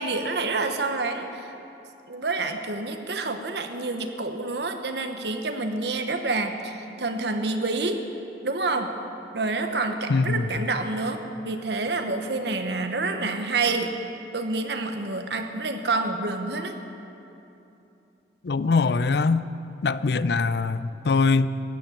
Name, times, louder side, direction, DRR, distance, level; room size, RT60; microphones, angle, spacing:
voice 1, 0.0-1.5 2.1-8.0 8.4-8.9 9.3-13.9 14.3-16.8, right 3 dB, 80° right, 6 dB, 1.1 m, -28 dB
voice 2, 10.1-10.5 18.4-19.5 19.8-21.5, left 4 dB, 70° left, 15 dB, 0.5 m, -22 dB
15.0 x 10.5 x 8.5 m, 2.9 s
head